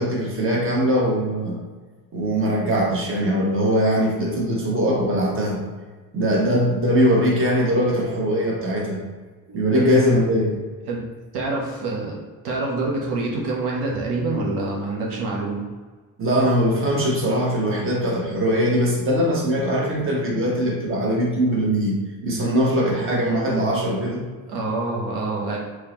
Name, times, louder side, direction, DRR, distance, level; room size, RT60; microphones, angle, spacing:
voice 1, 0.0-1.6 2.1-5.6 6.1-9.0 9.5-10.6 16.2-22.0 22.2-24.2, equal, 35° right, -3 dB, 1.0 m, -21 dB
voice 2, 9.5-9.9 10.9-11.0 11.3-12.2 12.4-15.6 24.5-25.6, right 3 dB, 90° right, -2 dB, 0.9 m, -26 dB
3.6 x 3.1 x 2.9 m, 1.4 s
cardioid pair, 120°, 38 cm